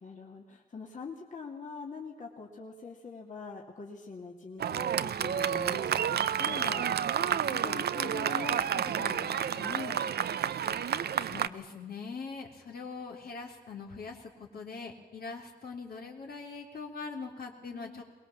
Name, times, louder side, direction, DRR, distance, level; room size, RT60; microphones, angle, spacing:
voice 1, 0.0-7.0 7.3-10.1 17.6-18.0, left 5 dB, 50° left, -1 dB, 2.7 m, -43 dB
Fireworks, 4.6-11.5, right 8 dB, 85° right, 0.7 m, -30 dB
voice 2, 11.2-18.0, left 4 dB, 70° left, 1 dB, 3.5 m, -42 dB
23.0 x 21.0 x 7.4 m, 1.2 s
wide cardioid pair, 125°, 16 cm